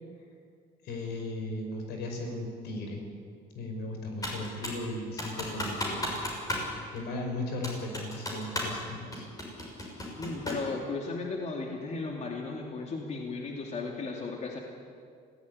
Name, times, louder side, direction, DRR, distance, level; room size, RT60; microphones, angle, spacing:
voice 1, 0.8-3.0 3.6-6.1 6.9-9.3, left 2 dB, 80° left, 3 dB, 5.6 m, -36 dB
Computer keyboard, 4.2-4.9 5.2-6.7 7.0-7.1 7.6-8.8 9.1-10.7, left 1 dB, 20° left, 6.6 m, -34 dB
voice 2, 10.2-14.6, left 3 dB, 40° left, 1 dB, 2.8 m, -35 dB
19.5 x 17.0 x 9.7 m, 2.2 s
cardioid pair, 110°, 17 cm